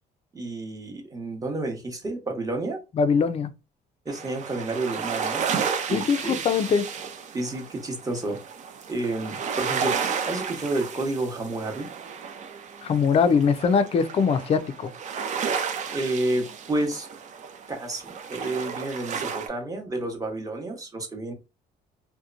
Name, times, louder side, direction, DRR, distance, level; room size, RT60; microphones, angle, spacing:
voice 1, 0.3-2.8 4.0-6.3 7.3-8.4 8.9-11.9 15.9-17.1 17.7-21.3, right 2 dB, 20° right, 0.9 m, -30 dB
voice 2, 2.9-3.5 5.9-6.9 12.8-14.9, left 6 dB, 35° left, 0.4 m, -22 dB
sound 1, 4.1-19.5, right 6 dB, 45° right, 0.5 m, -33 dB
2.8 x 2.1 x 2.4 m
cardioid pair, 110°, 17 cm